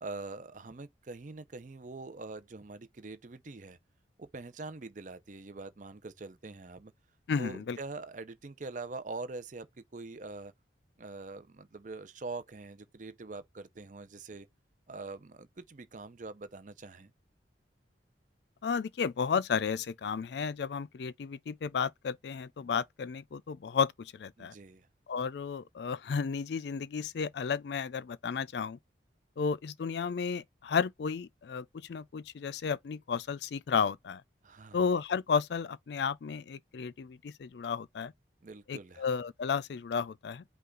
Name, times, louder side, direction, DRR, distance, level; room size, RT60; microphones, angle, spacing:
voice 1, 0.0-3.8 4.2-6.9 7.4-10.5 11.0-14.5 14.9-17.1 24.4-24.9 34.4-34.8 38.4-39.0, right 3 dB, 45° right, 0.6 m, -44 dB
voice 2, 7.3-7.8 18.6-24.5 25.1-28.8 29.4-34.2 34.7-38.1 38.7-40.4, left 6 dB, 65° left, 0.4 m, -33 dB
5.5 x 2.4 x 3.7 m
head